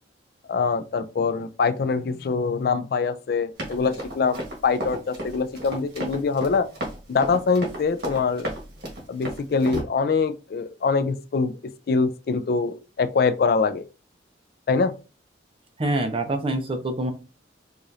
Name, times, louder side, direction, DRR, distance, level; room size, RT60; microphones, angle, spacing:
voice 1, 0.5-6.7 7.1-8.5 9.1-13.8 14.7-14.9, left 4 dB, 55° left, 0.3 m, -24 dB
Run, 3.6-9.8, right 1 dB, 55° right, 1.5 m, -33 dB
voice 2, 15.8-17.1, right 2 dB, 30° right, 0.6 m, -25 dB
4.8 x 2.5 x 2.7 m
head